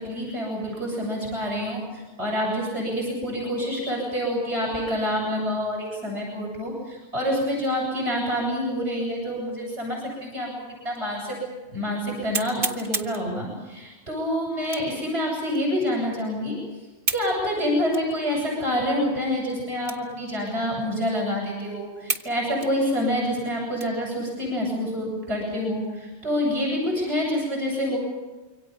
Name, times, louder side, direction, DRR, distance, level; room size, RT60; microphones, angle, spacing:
voice 1, 0.0-11.4 11.7-16.6 17.1-28.0, equal, 80° right, -3 dB, 8.0 m, -27 dB
sound 1, 10.9-11.0 11.6-11.7 12.3-13.3 14.6-15.0 15.5-15.6 17.0-17.3 17.9-18.1 18.7-18.8 19.8-20.2 20.5-20.6 21.2-21.3 22.1-22.3 22.6-24.1 24.6-24.7 25.2-25.7, right 3 dB, 55° right, 1.9 m, -31 dB
27.5 x 24.5 x 5.5 m, 1.2 s
omnidirectional pair, 1.1 m